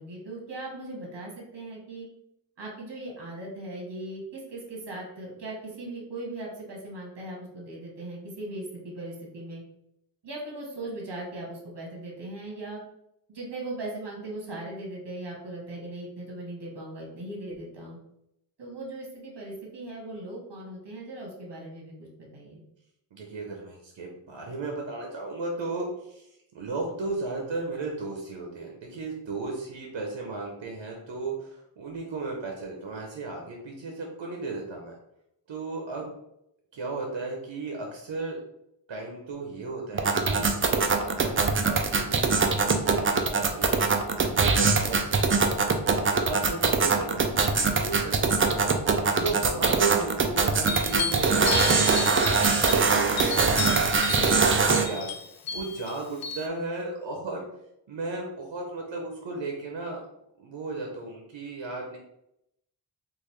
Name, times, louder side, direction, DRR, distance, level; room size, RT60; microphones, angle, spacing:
voice 1, 0.0-2.1 2.6-9.6 10.2-12.8 13.3-18.0 18.6-22.1 22.3-22.6 49.1-49.5, right 2 dB, 65° right, -2 dB, 1.3 m, -39 dB
voice 2, 23.1-26.3 26.5-34.9 35.5-36.1 36.7-38.4 38.9-45.4 46.1-55.1 55.5-57.5 57.9-60.0 60.4-62.0, right 3 dB, 90° right, 0 dB, 0.7 m, -35 dB
sound 1, 39.9-54.9, right 4 dB, 30° right, 0.4 m, -23 dB
sound 2, 50.7-56.5, left 5 dB, 55° left, 0.5 m, -33 dB
3.7 x 2.5 x 3.1 m, 0.80 s
wide cardioid pair, 100°, 44 cm